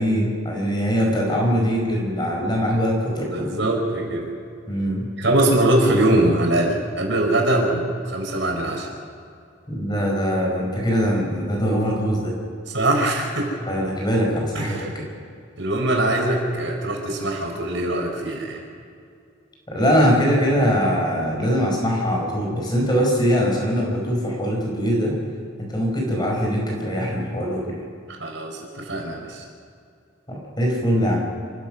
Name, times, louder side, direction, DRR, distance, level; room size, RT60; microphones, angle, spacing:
voice 1, 0.0-3.5 4.7-5.1 9.7-12.3 13.7-15.1 19.7-25.2 25.6-27.8 30.3-31.3, equal, 20° left, -1 dB, 5.0 m, -22 dB
voice 2, 3.2-4.3 5.2-8.9 12.7-13.5 14.5-14.9 15.6-18.6 28.1-29.4, right 1 dB, 65° right, 1 dB, 4.8 m, -22 dB
27.5 x 15.5 x 6.2 m, 2.4 s
head